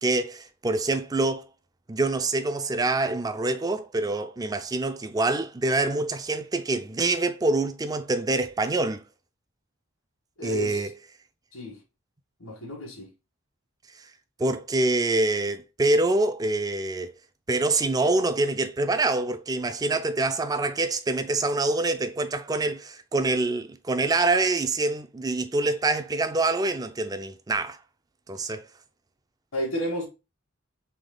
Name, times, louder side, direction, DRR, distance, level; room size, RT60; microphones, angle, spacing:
voice 1, 0.0-1.5 1.9-9.0 10.4-10.9 14.4-17.1 17.5-27.8 28.3-28.7, right 2 dB, 20° right, 0.4 m, -25 dB
voice 2, 10.4-10.8 11.5-11.8 12.4-13.1 29.5-30.0, equal, 85° left, 1.5 m, -31 dB
3.5 x 3.2 x 3.8 m
head